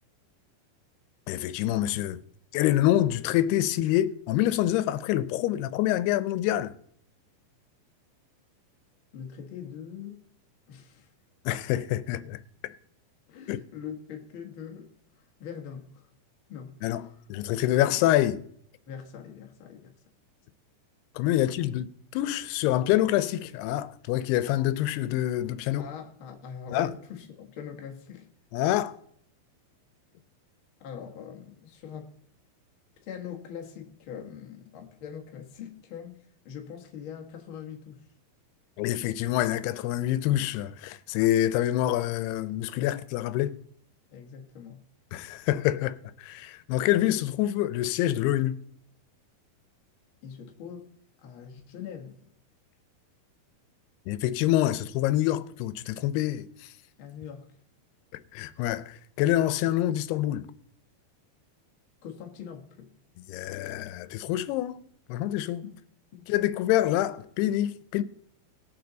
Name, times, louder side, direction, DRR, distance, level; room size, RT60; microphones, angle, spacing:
voice 1, 1.3-2.2 2.5-6.7 11.5-12.4 13.5-13.6 16.8-18.4 21.2-25.9 26.7-26.9 28.5-29.0 38.8-43.6 45.1-48.6 54.1-56.7 58.3-60.5 63.3-65.6 66.3-68.0, left 13 dB, 90° left, 2.6 m, -26 dB
voice 2, 9.1-10.3 10.7-11.1 13.3-16.1 16.5-17.2 18.9-19.9 25.8-28.3 30.8-32.2 33.0-38.1 44.1-44.8 50.2-50.9 51.2-52.3 57.0-57.5 62.0-62.9 65.6-65.8 66.1-66.3, left 8 dB, 60° left, 1.4 m, -42 dB
20.0 x 7.0 x 3.9 m
omnidirectional pair, 4.5 m